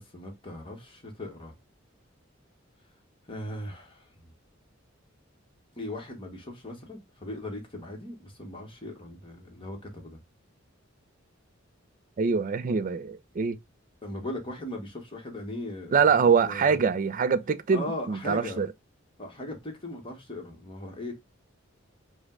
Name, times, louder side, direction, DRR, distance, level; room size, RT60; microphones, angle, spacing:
voice 1, 0.0-1.5 3.3-4.1 5.8-10.2 14.0-16.1 16.5-16.9 17.7-18.6 19.2-21.1, left 1 dB, 25° left, 1.1 m, -38 dB
voice 2, 12.2-13.6 15.9-18.7, right 6 dB, 40° right, 0.4 m, -24 dB
5.0 x 2.1 x 3.6 m
head